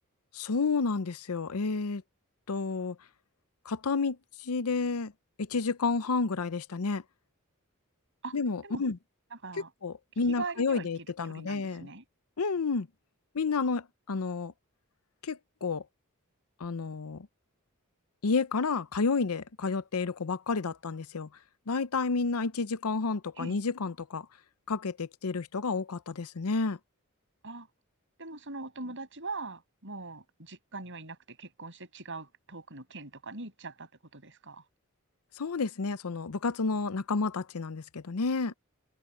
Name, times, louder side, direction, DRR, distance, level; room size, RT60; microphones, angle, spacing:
voice 1, 0.3-2.0 2.5-3.0 3.7-4.2 4.4-5.1 5.4-7.0 8.3-9.0 9.8-11.9 12.4-12.9 13.3-14.5 15.2-15.8 16.6-17.3 18.2-21.3 21.7-24.3 24.7-26.8 35.4-38.5, left 4 dB, 85° left, 0.7 m, -30 dB
voice 2, 9.3-9.7 10.3-10.9 11.3-12.0 23.4-23.6 27.4-27.7 28.2-34.6, right 3 dB, 60° right, 7.0 m, -41 dB
head